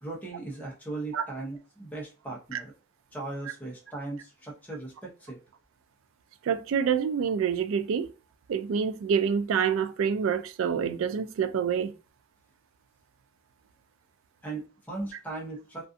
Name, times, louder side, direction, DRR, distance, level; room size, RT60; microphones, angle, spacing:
voice 1, 0.0-2.7 3.1-5.4 14.4-15.9, right 2 dB, 10° left, 0.7 m, -38 dB
voice 2, 6.4-8.1 8.5-11.9, right 7 dB, 70° right, 0.3 m, -27 dB
2.4 x 2.4 x 2.5 m
head